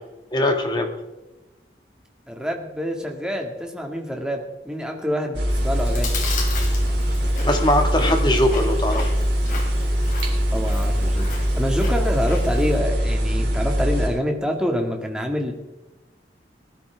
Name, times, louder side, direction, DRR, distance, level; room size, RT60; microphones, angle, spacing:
voice 1, 0.3-0.9 7.4-9.1, left 1 dB, 25° left, 4 dB, 1.7 m, -21 dB
voice 2, 2.3-6.1 10.5-15.5, equal, 5° right, 1 dB, 1.9 m, -26 dB
sound 1, 5.3-14.1, equal, 85° right, 3.2 m, -22 dB
Chewing mastication, 5.5-12.8, left 2 dB, 45° left, 3.0 m, -34 dB
19.0 x 13.0 x 3.5 m, 1.0 s
head